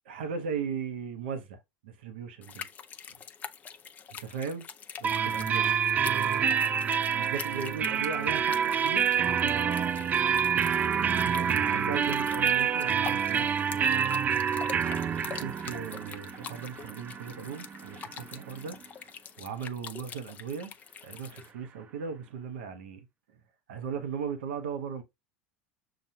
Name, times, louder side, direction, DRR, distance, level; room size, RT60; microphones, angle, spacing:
voice 1, 0.0-2.7 4.1-4.7 5.0-10.1 10.9-14.2 15.1-20.7 21.0-23.4 23.7-25.0, right 6 dB, 85° right, 0.9 m, -38 dB
sound 1, 2.4-21.5, left 7 dB, 30° left, 0.5 m, -45 dB
sound 2, 5.0-18.6, right 7 dB, 30° right, 0.3 m, -27 dB
5.9 x 2.4 x 2.7 m
supercardioid pair, 110°, 6 cm